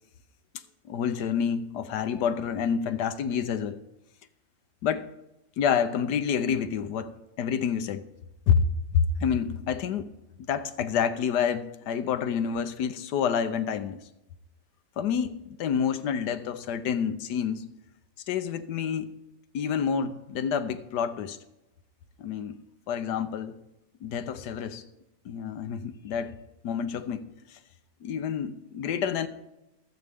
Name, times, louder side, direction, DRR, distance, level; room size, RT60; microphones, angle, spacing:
voice 1, 0.8-3.8 4.8-5.1 5.6-8.0 8.5-8.6 8.9-10.1 10.5-14.0 15.0-17.6 18.3-19.1 19.5-21.4 22.2-22.6 22.9-23.6 24.0-24.8 25.2-26.3 26.6-27.2 27.5-27.6 28.0-29.3, left 7 dB, 80° left, 1.4 m, -28 dB
20.0 x 8.1 x 3.5 m
omnidirectional pair, 1.8 m